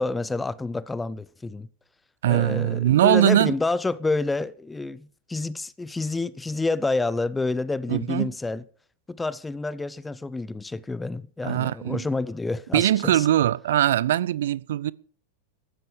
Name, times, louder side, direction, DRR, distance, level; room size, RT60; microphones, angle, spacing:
voice 1, 0.0-1.7 2.3-8.6 9.1-13.3, left 3 dB, 10° left, 0.7 m, -28 dB
voice 2, 2.2-3.5 7.9-8.3 11.4-12.1 12.7-14.9, right 12 dB, 60° right, 0.6 m, -21 dB
15.0 x 12.0 x 5.0 m
figure-of-eight pair, 90°, 0 cm